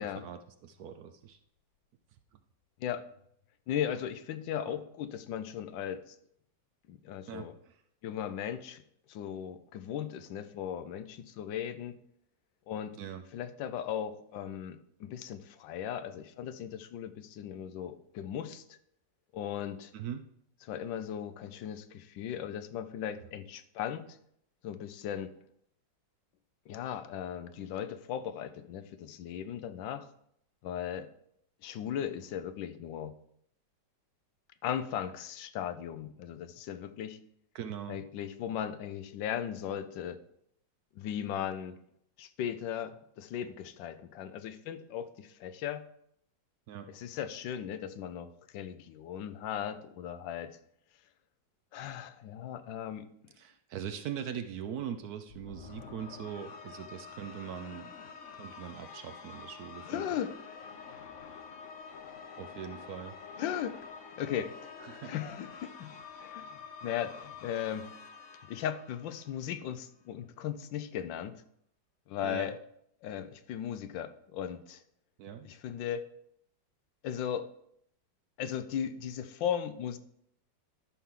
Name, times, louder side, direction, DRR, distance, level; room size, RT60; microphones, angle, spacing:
voice 1, 0.0-1.4 4.7-4.8 7.3-7.8 13.0-13.2 19.9-20.3 37.5-38.0 46.7-46.9 53.4-57.9 58.3-60.1 62.4-63.2 64.8-65.1 72.2-72.6 75.2-75.5, right 9 dB, 70° right, 8 dB, 1.0 m, -41 dB
voice 2, 3.7-6.2 6.9-7.5 8.0-8.8 9.1-11.9 12.7-13.0 13.3-18.8 19.3-19.9 20.7-24.2 24.6-25.3 26.7-30.1 30.6-31.1 31.6-33.1 34.6-37.2 37.9-40.2 40.9-41.8 42.2-45.8 46.9-50.6 51.7-53.1 59.9-60.4 63.4-63.8 64.2-64.7 65.0-65.9 66.2-67.9 68.5-71.4 72.1-72.6 73.0-74.8 75.4-76.1 77.0-77.5 78.4-80.0, left 9 dB, 90° left, 10 dB, 1.4 m, -37 dB
sound 1, 55.3-69.7, left 5 dB, 55° left, 1.0 m, -48 dB
12.5 x 5.8 x 3.8 m, 0.71 s
omnidirectional pair, 2.0 m